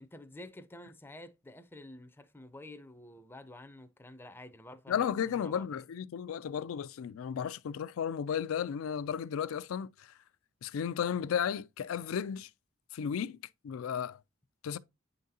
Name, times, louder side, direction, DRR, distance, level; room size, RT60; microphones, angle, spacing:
voice 1, 0.0-5.9, left 1 dB, 10° left, 0.4 m, -50 dB
voice 2, 4.9-10.1 10.6-12.5 12.9-14.2 14.6-14.8, left 8 dB, 80° left, 0.3 m, -34 dB
9.1 x 3.9 x 2.7 m
head